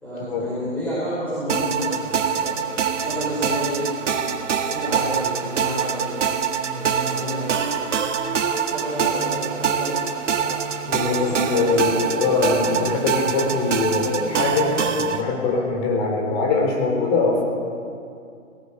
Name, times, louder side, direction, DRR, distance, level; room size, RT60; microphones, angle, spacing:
voice 1, 0.0-2.7 3.0-3.9 4.6-6.2 6.7-7.8 8.7-10.5 11.0-11.9, equal, 5° left, -10 dB, 5.0 m, -30 dB
sound 1, 1.5-15.2, right 7 dB, 65° right, 1.9 m, -24 dB
voice 2, 10.9-17.4, left 3 dB, 30° left, 2 dB, 4.3 m, -22 dB
18.5 x 18.0 x 8.6 m, 2.4 s
hypercardioid pair, 150°, 40 cm